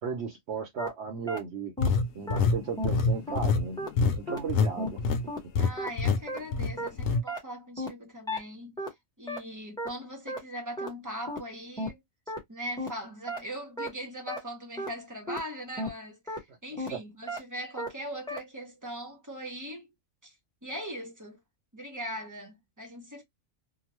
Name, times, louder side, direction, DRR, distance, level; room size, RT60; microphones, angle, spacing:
voice 1, 0.0-1.7 2.1-3.8 4.1-5.0 16.9-17.0, right 5 dB, 65° right, 0.9 m, -35 dB
sound 1, 0.8-0.9 1.3-1.4 1.8-1.9 2.3-2.4 2.8-2.9 3.3-3.4 3.8-3.9 4.3-4.4 4.8-4.9 5.3-5.4 5.8-5.9 6.3-6.4 6.8-6.9 7.3-7.4 7.8-7.9 8.3-8.4 8.8-8.9 9.3-9.4 9.8-9.9 10.3-10.4 10.8-10.9 11.3-11.4 11.8-11.9 12.3-12.4 12.8-12.9 13.3-13.4 13.8-13.9 14.3-14.4 14.8-14.9 15.3-15.4 15.8-15.9 16.3-16.4 16.8-16.9 17.3-17.4 17.8-17.9 18.3-18.4, equal, 5° left, 0.9 m, -33 dB
sound 2, 1.8-4.7 5.0-5.2 5.6-5.7 6.0-6.2 6.5-7.2, left 4 dB, 85° left, 1.0 m, -25 dB
voice 2, 5.6-12.0 12.5-19.9 20.2-20.3 20.6-21.4 21.7-23.2, equal, 20° right, 0.6 m, -40 dB
2.9 x 2.0 x 2.9 m
omnidirectional pair, 1.3 m